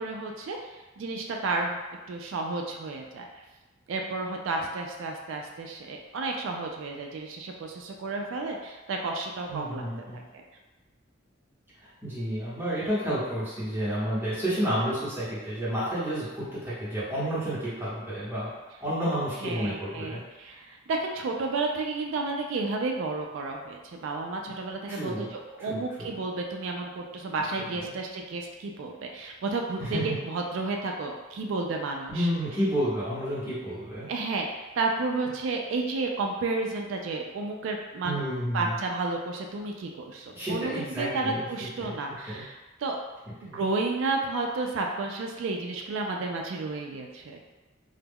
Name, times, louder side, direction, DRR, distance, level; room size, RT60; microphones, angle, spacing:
voice 1, 0.0-1.8 2.1-3.3 3.9-9.8 10.1-10.2 19.4-32.3 34.1-34.5 34.8-38.2 38.5-43.0 43.4-47.4, right 3 dB, 70° right, 1 dB, 0.3 m, -32 dB
voice 2, 9.5-10.3 12.0-18.5 18.8-20.2 24.9-25.3 25.6-26.1 27.8-27.9 29.8-30.1 32.1-34.1 38.0-38.8 40.3-41.9 42.3-42.4 43.4-43.6, equal, 10° right, -10 dB, 0.9 m, -30 dB
2.2 x 2.0 x 3.5 m, 1.1 s
head